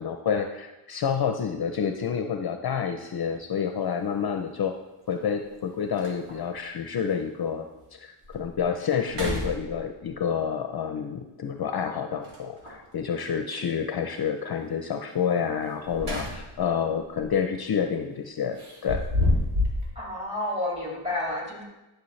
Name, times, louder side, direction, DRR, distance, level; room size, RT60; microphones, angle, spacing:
voice 1, 0.0-4.7 5.1-7.6 7.9-19.0, left 7 dB, 50° left, 6 dB, 0.5 m, -28 dB
sound 1, 3.2-3.4 5.1-5.2 5.6-5.7 6.0-6.5 7.1-7.2 7.7-7.8 8.2-8.6 9.0-10.1 12.2-12.9 15.6-16.7 17.0-17.3 18.6-19.9, left 1 dB, 85° right, 2.6 m, -29 dB
voice 2, 20.0-21.6, left 1 dB, 10° right, -3 dB, 2.3 m, -30 dB
11.5 x 6.2 x 3.2 m, 1.0 s
wide cardioid pair, 130°, 50 cm